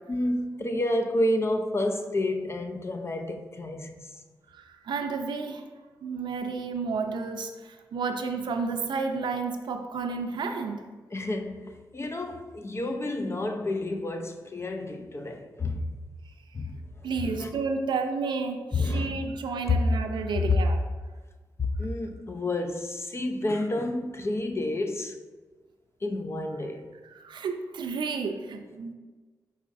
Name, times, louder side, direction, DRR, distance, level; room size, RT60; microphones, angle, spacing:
voice 1, 0.1-4.1 11.1-15.9 16.5-16.8 17.4-17.5 18.7-19.2 19.7-19.8 21.6-25.2 26.0-26.9, left 2 dB, 35° left, 0.5 m, -30 dB
voice 2, 4.5-5.6 6.0-10.8 17.0-20.8 27.0-28.9, right 4 dB, 80° right, 0.4 m, -31 dB
4.7 x 4.1 x 2.5 m
cardioid pair, 50°, 8 cm